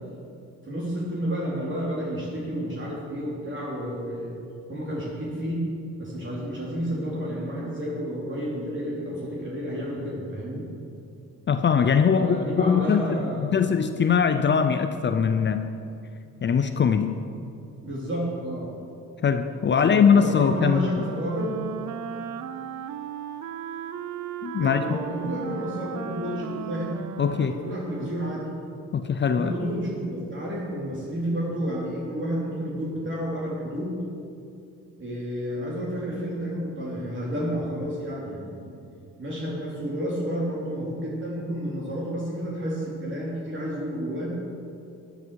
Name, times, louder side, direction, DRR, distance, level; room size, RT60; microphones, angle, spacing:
voice 1, 0.6-4.3 4.7-5.7 6.0-10.7 12.2-13.6 17.8-18.7 19.7-21.6 24.6-27.0 27.5-28.5 29.3-34.0 35.0-38.7 39.2-44.3, equal, 40° right, -5 dB, 3.1 m, -31 dB
voice 2, 11.5-15.7 16.4-17.2 19.2-20.9 24.4-25.0 27.2-27.5 28.9-29.5, left 6 dB, 40° left, 8 dB, 0.6 m, -21 dB
Wind instrument woodwind instrument, 20.3-28.5, right 9 dB, 70° right, 0.7 m, -36 dB
13.5 x 10.0 x 4.7 m, 2.5 s
cardioid pair, 90°, 30 cm